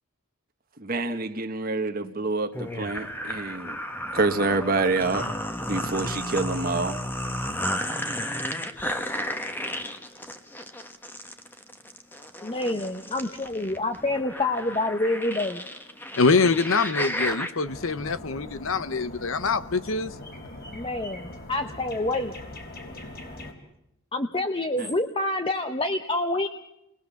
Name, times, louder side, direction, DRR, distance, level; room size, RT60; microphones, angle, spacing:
voice 1, 0.8-3.8 4.1-5.3 5.7-7.0 24.8-24.9, right 3 dB, 40° right, 6 dB, 1.5 m, -27 dB
sound 1, 2.5-17.5, equal, 10° left, 1.3 m, -33 dB
voice 2, 12.4-15.6 20.7-22.3 24.1-26.5, left 2 dB, 25° left, 6 dB, 0.9 m, -27 dB
voice 3, 16.2-20.1, left 4 dB, 70° left, 13 dB, 0.8 m, -24 dB
sound 2, 17.6-23.5, left 1 dB, 45° left, 3.4 m, -41 dB
29.5 x 21.5 x 7.1 m, 0.87 s
head